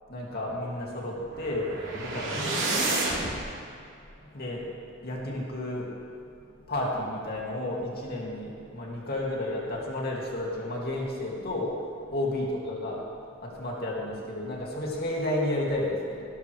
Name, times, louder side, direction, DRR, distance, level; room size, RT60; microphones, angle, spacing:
voice 1, 0.1-3.0 4.2-4.7 5.0-5.9 6.7-13.0 13.4-16.2, left 1 dB, 50° left, -3 dB, 2.6 m, -32 dB
sound 1, 1.2-3.4, right 2 dB, 70° right, 3.4 m, -30 dB
17.0 x 12.5 x 3.4 m, 2.5 s
head